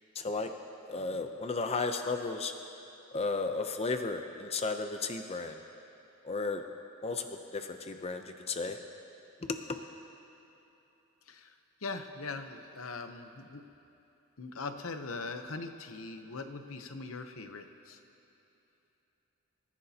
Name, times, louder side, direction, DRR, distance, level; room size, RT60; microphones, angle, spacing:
voice 1, 0.1-0.5 0.9-2.5 3.1-5.6 6.2-6.6 7.0-8.8 9.4-9.8, left 3 dB, 30° left, 6 dB, 0.6 m, -34 dB
voice 2, 11.8-13.6 14.4-18.0, left 3 dB, 80° left, 7 dB, 0.9 m, -41 dB
26.5 x 14.5 x 2.9 m, 2.9 s
head